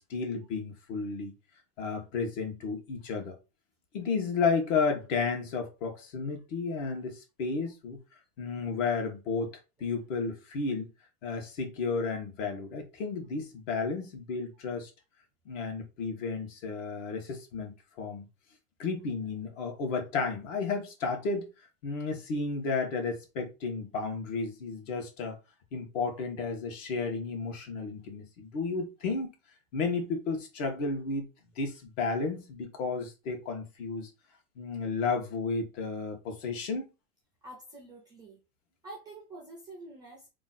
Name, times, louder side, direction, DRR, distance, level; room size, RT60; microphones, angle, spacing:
voice 1, 0.0-1.3 1.8-3.4 3.9-8.0 8.4-10.9 11.2-14.9 15.4-18.3 18.8-21.5 21.8-25.4 25.7-29.3 29.7-31.3 31.6-34.1 34.6-36.9, left 4 dB, 60° left, 1.3 m, -32 dB
voice 2, 37.4-38.4 38.8-40.3, right 2 dB, 10° right, 0.4 m, -47 dB
3.1 x 2.4 x 3.9 m
supercardioid pair, 155°, 42 cm